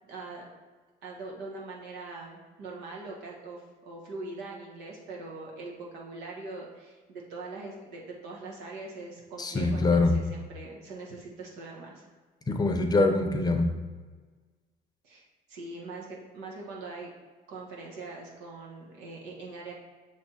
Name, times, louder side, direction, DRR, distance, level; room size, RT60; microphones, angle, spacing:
voice 1, 0.0-0.5 1.0-12.1 15.0-17.1 17.5-19.7, right 3 dB, 90° right, -2 dB, 1.4 m, -42 dB
voice 2, 9.4-10.2 12.5-13.7, left 3 dB, 25° left, 5 dB, 0.6 m, -24 dB
6.4 x 3.4 x 4.3 m, 1.4 s
cardioid pair, 110°, 17 cm